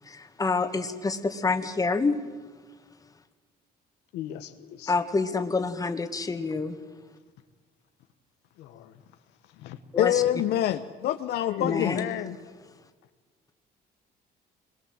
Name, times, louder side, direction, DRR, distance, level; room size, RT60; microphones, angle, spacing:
voice 1, 0.0-2.2 4.9-6.8 9.9-10.2 11.6-12.1, left 4 dB, 20° left, 2.0 m, -27 dB
voice 2, 4.1-4.9 8.6-9.0 9.5-9.8 11.5-12.4, left 12 dB, 90° left, 1.5 m, -35 dB
voice 3, 10.0-12.0, left 12 dB, 75° left, 0.9 m, -25 dB
25.0 x 22.0 x 8.0 m
cardioid pair, 110°, 17 cm